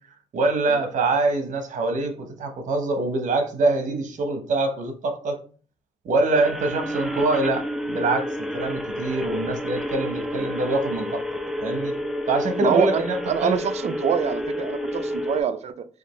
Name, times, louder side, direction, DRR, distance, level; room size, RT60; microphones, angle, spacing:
voice 1, 0.3-5.4 6.0-11.2 11.6-11.9 12.3-13.6, right 2 dB, 75° right, 5 dB, 0.9 m, -24 dB
sound 1, 6.3-15.4, equal, ahead, 0.5 m, -30 dB
voice 2, 12.6-15.9, right 7 dB, 55° right, 11 dB, 0.4 m, -25 dB
5.0 x 2.4 x 3.1 m, 0.42 s
cardioid pair, 90°, 13 cm